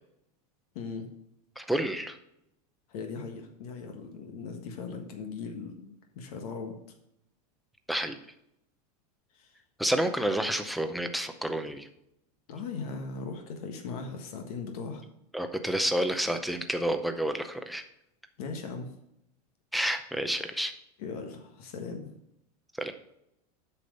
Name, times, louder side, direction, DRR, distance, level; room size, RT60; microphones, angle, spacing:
voice 1, 0.7-1.1 2.9-6.7 9.3-9.5 12.5-15.0 18.4-18.9 21.0-22.1, left 4 dB, 70° left, 4 dB, 1.6 m, -38 dB
voice 2, 1.6-2.2 7.9-8.2 9.8-11.9 15.3-17.8 19.7-20.7 22.8-22.9, right 1 dB, ahead, 6 dB, 0.6 m, -29 dB
8.4 x 6.1 x 5.3 m, 0.79 s
supercardioid pair, 150°, 20 cm